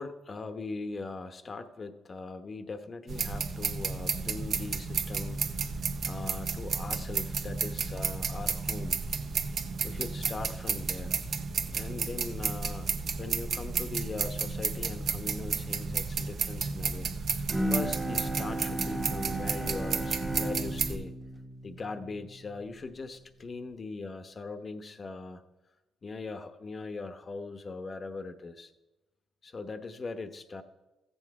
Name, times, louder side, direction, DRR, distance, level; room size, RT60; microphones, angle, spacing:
voice 1, 0.0-5.4 6.1-9.0 9.8-11.2 11.7-12.9 13.2-21.1 21.6-25.4 26.0-28.7 29.4-30.6, left 3 dB, 35° left, 9 dB, 1.0 m, -40 dB
sound 1, 3.1-21.0, right 5 dB, 60° right, 0.9 m, -32 dB
Bowed string instrument, 17.5-22.9, right 1 dB, 5° right, 1.1 m, -35 dB
14.5 x 8.0 x 4.8 m, 1.1 s
cardioid pair, 90°, 0 cm